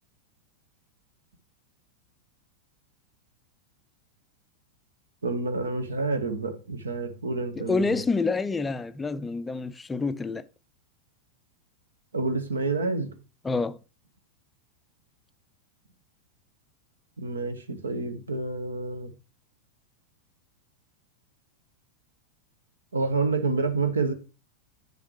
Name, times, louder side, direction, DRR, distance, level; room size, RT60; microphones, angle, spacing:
voice 1, 5.2-8.0 12.1-13.1 17.2-19.1 22.9-24.1, right 3 dB, 75° right, 1.2 m, -28 dB
voice 2, 7.6-10.4 13.4-13.8, left 4 dB, 15° left, 0.4 m, -27 dB
9.5 x 7.1 x 3.2 m
figure-of-eight pair, 90°, 0 cm